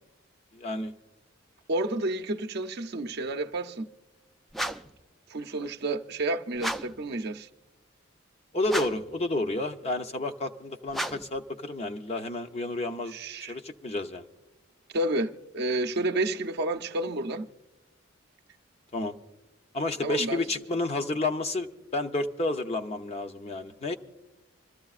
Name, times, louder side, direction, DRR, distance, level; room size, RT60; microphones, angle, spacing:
voice 1, 0.5-0.9 5.6-5.7 8.5-13.1 13.4-14.3 18.9-19.1 19.7-24.0, left 2 dB, 30° left, 0.7 m, -30 dB
voice 2, 1.7-3.9 5.3-7.5 13.1-13.5 14.9-17.5 20.0-20.5, right 2 dB, 55° right, 0.6 m, -30 dB
sound 1, 4.5-5.0 6.6-7.0 8.6-9.1 10.9-11.4, equal, ahead, 0.3 m, -33 dB
27.0 x 13.5 x 2.4 m
head